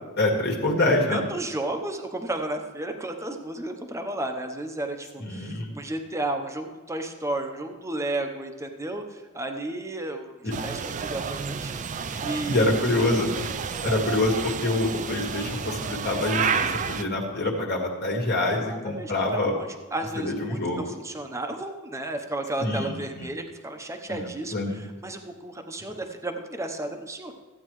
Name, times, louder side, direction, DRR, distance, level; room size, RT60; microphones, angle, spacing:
voice 1, 0.2-1.2 5.2-5.7 10.4-10.5 12.5-13.3 13.8-19.5 20.2-20.9 22.6-23.3 24.1-24.9, left 2 dB, 50° left, 0 dB, 1.7 m, -26 dB
voice 2, 1.1-10.3 10.6-12.7 18.5-27.3, right 2 dB, 15° right, 5 dB, 0.8 m, -33 dB
sound 1, 10.5-17.0, right 6 dB, 35° right, 0.4 m, -30 dB
14.5 x 8.8 x 3.1 m, 1.3 s
head